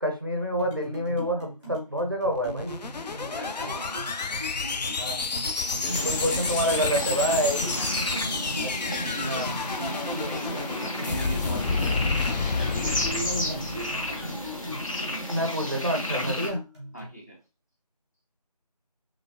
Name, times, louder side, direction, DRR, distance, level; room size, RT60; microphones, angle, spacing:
voice 1, 0.0-2.8 5.0-5.3 6.0-7.7 8.6-8.7 9.2-9.6 13.2-13.6 15.3-16.6, equal, 35° right, 3 dB, 0.5 m, -28 dB
sound 1, 0.6-17.1, equal, 5° left, 1.0 m, -41 dB
sound 2, 2.4-14.7, left 4 dB, 85° left, 0.4 m, -30 dB
voice 2, 3.3-4.0 5.6-6.4 7.8-12.1 12.6-14.3 16.9-17.4, right 2 dB, 25° left, -2 dB, 0.6 m, -39 dB
sound 3, 5.9-16.5, left 1 dB, 50° left, 0.9 m, -32 dB
3.1 x 2.4 x 2.5 m, 0.28 s
figure-of-eight pair, 170°, 21 cm